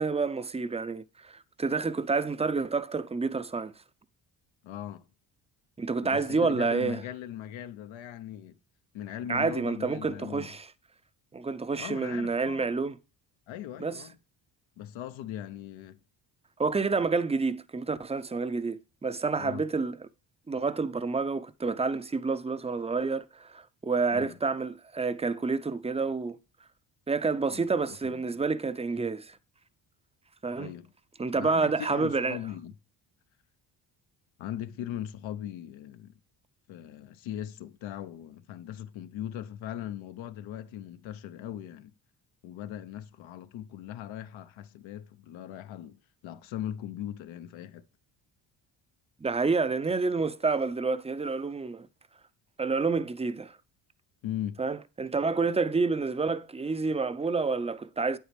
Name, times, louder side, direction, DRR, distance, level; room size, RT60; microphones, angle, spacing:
voice 1, 0.0-3.7 5.8-7.0 9.3-10.7 11.3-13.0 13.8-14.0 16.6-20.0 20.5-26.4 27.1-29.4 30.4-30.7 31.2-32.4 49.2-51.9 52.6-53.6 54.6-58.2, right 4 dB, 15° right, 0.6 m, -29 dB
voice 2, 4.6-5.1 6.0-8.6 8.9-10.5 11.8-12.7 13.5-14.2 14.8-16.0 19.4-19.7 24.1-24.4 27.5-27.7 28.0-28.4 30.6-30.9 31.3-32.8 34.4-36.1 36.7-41.9 42.4-47.8 54.2-54.6, left 11 dB, 80° left, 0.9 m, -39 dB
8.7 x 8.0 x 3.3 m
supercardioid pair, 70°, 46 cm